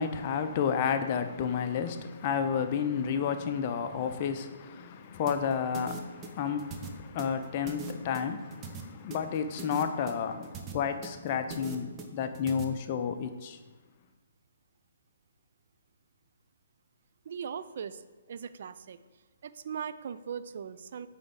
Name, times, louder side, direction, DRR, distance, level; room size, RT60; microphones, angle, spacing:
voice 1, 0.0-13.6, left 7 dB, 35° left, 0.5 m, -31 dB
sound 1, 5.3-12.6, right 5 dB, 20° right, 0.6 m, -42 dB
voice 2, 17.3-18.0 18.3-19.0 19.4-21.1, right 7 dB, 50° right, 0.3 m, -39 dB
8.6 x 3.4 x 3.7 m
figure-of-eight pair, 130°, 0 cm